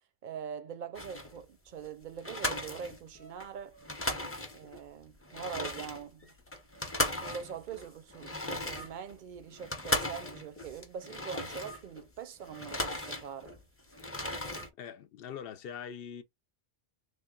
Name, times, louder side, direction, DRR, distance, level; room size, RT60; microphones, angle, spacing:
voice 1, 0.2-4.1 4.5-6.3 7.2-13.5, right 7 dB, 60° right, 0.6 m, -43 dB
sound 1, 0.9-1.4 1.8-1.9 2.2-3.5 3.7-4.8 5.2-12.0 12.4-13.6 13.9-14.7, left 1 dB, 15° left, 0.7 m, -36 dB
voice 2, 14.8-16.2, left 8 dB, 70° left, 0.7 m, -42 dB
3.4 x 2.2 x 3.7 m
omnidirectional pair, 1.0 m